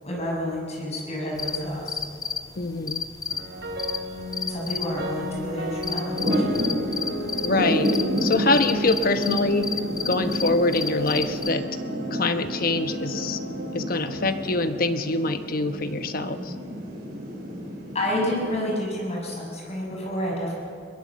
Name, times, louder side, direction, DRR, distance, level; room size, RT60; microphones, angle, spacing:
voice 1, 0.0-2.0 4.4-6.7 17.9-20.5, left 1 dB, 40° left, -2 dB, 6.5 m, -29 dB
sound 1, 1.4-11.5, left 7 dB, 20° left, 0.9 m, -33 dB
voice 2, 2.6-3.0 7.4-7.9 8.2-9.7 10.0-11.7 12.1-13.4 13.7-16.5, left 2 dB, 55° left, 9 dB, 1.1 m, -24 dB
sound 2, 3.3-15.6, right 1 dB, 85° right, 3.1 m, -33 dB
Thunder / Rain, 6.1-18.4, equal, 55° right, 5.6 m, -31 dB
22.5 x 20.0 x 7.4 m, 2.5 s
head